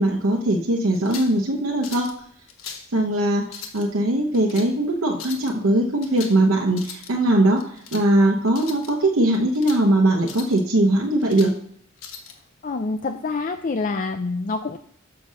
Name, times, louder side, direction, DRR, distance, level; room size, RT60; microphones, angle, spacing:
voice 1, 0.0-2.1 2.9-3.5 3.7-7.6 7.9-11.5, right 1 dB, 75° right, -1 dB, 1.0 m, -20 dB
sound 1, 0.9-1.4 1.8-2.2 2.5-2.9 3.4-3.9 4.3-4.7 5.1-5.5 6.0-6.4 6.7-7.1 7.6-8.1 8.5-8.9 9.3-9.8 10.2-10.6 11.0-11.5 12.0-12.3, left 6 dB, 80° left, 1.2 m, -39 dB
voice 2, 12.6-14.8, left 3 dB, 40° left, 7 dB, 0.5 m, -26 dB
6.8 x 5.6 x 6.3 m, 0.64 s
head